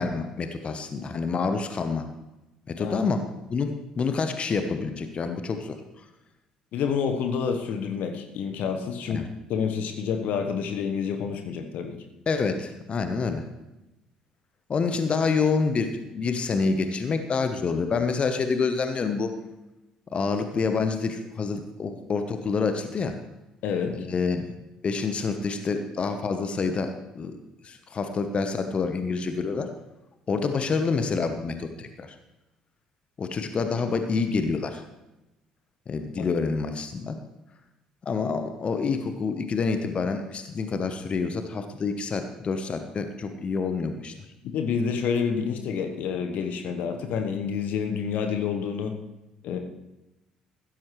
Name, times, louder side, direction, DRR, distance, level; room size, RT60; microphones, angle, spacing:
voice 1, 0.0-2.1 2.8-3.7 4.0-5.8 9.1-9.3 12.3-13.4 14.7-19.3 20.1-23.1 23.9-24.4 24.8-27.4 27.6-29.7 30.3-32.2 33.2-34.8 35.9-37.2 38.0-44.1, left 4 dB, 35° left, 7 dB, 1.1 m, -27 dB
voice 2, 6.7-9.2 9.5-12.0 23.6-24.0 36.2-36.3 44.5-48.9 49.4-49.6, left 6 dB, 55° left, 6 dB, 1.2 m, -28 dB
15.5 x 13.5 x 3.2 m, 0.97 s
figure-of-eight pair, 50°, 3 cm